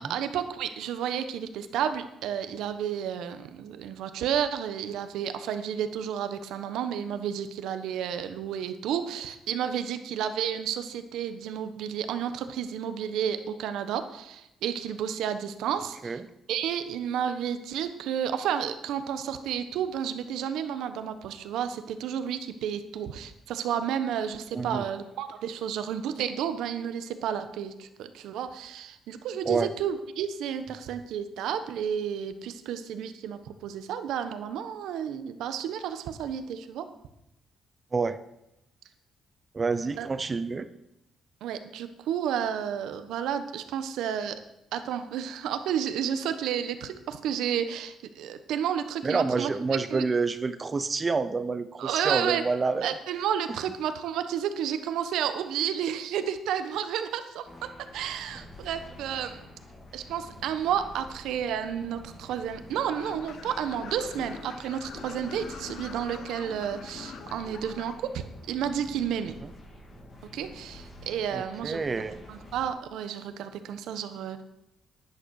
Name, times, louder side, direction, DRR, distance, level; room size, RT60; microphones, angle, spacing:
voice 1, 0.1-16.2 16.5-36.8 40.0-40.1 41.4-44.4 44.7-50.0 51.8-52.4 52.8-57.5 57.9-59.4 59.9-69.4 70.3-71.8 72.3-74.4, right 9 dB, 90° right, 9 dB, 1.2 m, -31 dB
voice 2, 24.5-24.8 29.4-29.7 37.9-38.2 39.5-40.7 49.0-52.9 69.4-69.5 71.3-72.2, right 4 dB, 25° right, 13 dB, 0.7 m, -28 dB
sound 1, 57.5-72.7, left 1 dB, 30° left, 2.8 m, -48 dB
sound 2, 62.9-67.9, left 6 dB, 60° left, 1.3 m, -44 dB
11.0 x 9.4 x 6.5 m, 0.86 s
cardioid pair, 145°, 0 cm